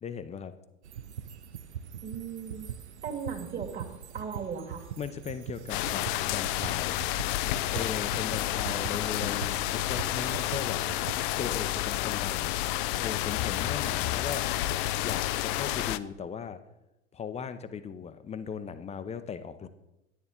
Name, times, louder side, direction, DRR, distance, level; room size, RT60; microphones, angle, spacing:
voice 1, 0.0-0.5 5.0-7.0 7.7-10.8 11.4-12.5 13.0-14.5 15.0-16.6 17.1-19.7, left 7 dB, 20° left, 11 dB, 0.7 m, -38 dB
sound 1, 0.8-11.3, right 9 dB, 75° right, 0.6 m, -42 dB
voice 2, 2.0-2.6 3.0-3.9 4.1-4.9 8.5-8.8, right 6 dB, 30° right, 2 dB, 2.1 m, -37 dB
sound 2, 5.7-16.0, left 15 dB, 50° left, 0.5 m, -30 dB
10.0 x 9.9 x 3.7 m, 0.93 s
figure-of-eight pair, 80°, 34 cm